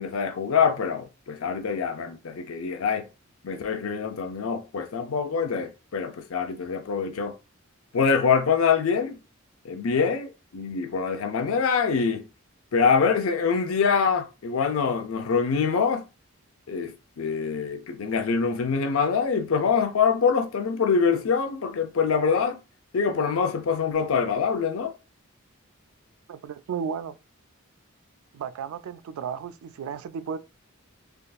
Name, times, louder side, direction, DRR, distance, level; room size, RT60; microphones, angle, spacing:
voice 1, 0.0-3.1 3.4-7.4 7.9-9.2 9.6-12.2 12.7-16.1 16.7-22.6 22.9-24.9, left 5 dB, 80° left, 0.5 m, -25 dB
voice 2, 26.3-27.2 28.3-30.4, right 7 dB, 85° right, 0.3 m, -34 dB
3.5 x 2.5 x 2.3 m
head